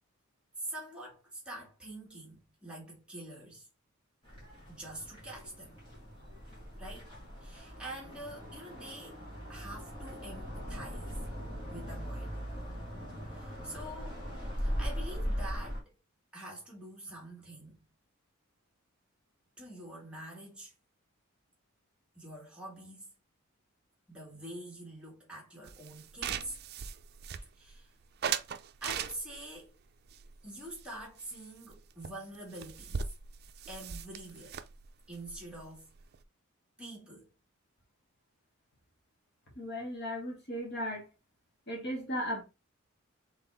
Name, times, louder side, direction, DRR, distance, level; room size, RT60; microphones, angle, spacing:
voice 1, 0.6-3.7 4.7-5.8 6.8-7.1 7.4-9.2 9.5-11.2 11.7-12.4 13.3-14.2 14.6-15.9 16.3-17.8 19.6-20.7 22.1-23.1 24.1-26.6 27.6-27.9 28.8-29.7 30.4-33.0 33.7-34.6 35.1-35.9 36.8-37.3, right 1 dB, 5° right, 1.9 m, -45 dB
sound 1, 4.2-15.8, equal, 25° left, 2.5 m, -39 dB
sound 2, 25.7-27.8 28.2-29.5 30.1-31.3 31.6-31.8 32.0-32.1 32.3-36.2, right 7 dB, 50° right, 0.4 m, -39 dB
voice 2, 39.6-41.1 41.7-42.4, equal, 55° left, 1.9 m, -36 dB
4.1 x 3.7 x 3.4 m
head